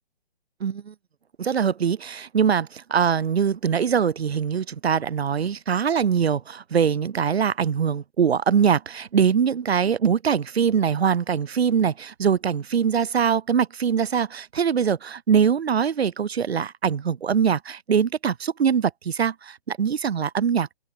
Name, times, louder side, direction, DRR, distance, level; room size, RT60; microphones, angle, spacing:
voice 1, 0.6-0.9 1.4-20.7, right 7 dB, 85° right, 0.5 m, -23 dB
open air
figure-of-eight pair, 135°, 31 cm